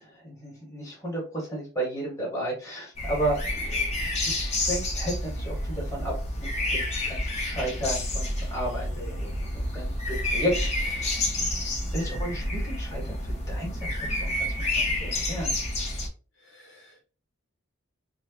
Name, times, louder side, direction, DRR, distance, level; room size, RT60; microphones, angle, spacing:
voice 1, 0.0-11.2 11.9-15.6, right 1 dB, 15° left, -5 dB, 1.5 m, -33 dB
sound 1, 2.9-16.1, left 1 dB, 30° left, 0.8 m, -29 dB
voice 2, 12.0-12.4 16.3-17.1, left 1 dB, 55° left, -2 dB, 1.1 m, -45 dB
4.3 x 2.1 x 2.9 m, 0.35 s
head